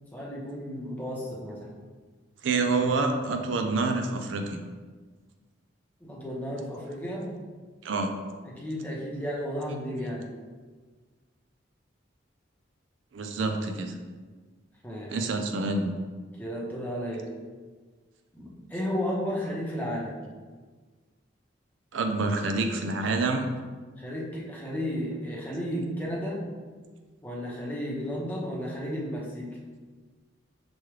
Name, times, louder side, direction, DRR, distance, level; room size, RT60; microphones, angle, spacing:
voice 1, 0.1-1.8 6.0-7.3 8.4-10.3 14.8-15.2 16.4-17.3 18.3-20.2 24.0-26.4 27.2-29.5, equal, 10° left, -4 dB, 0.8 m, -33 dB
voice 2, 2.4-4.7 7.8-8.1 13.1-14.0 15.1-15.9 21.9-23.5, right 3 dB, 75° right, 5 dB, 0.4 m, -27 dB
6.0 x 2.3 x 3.2 m, 1.4 s
head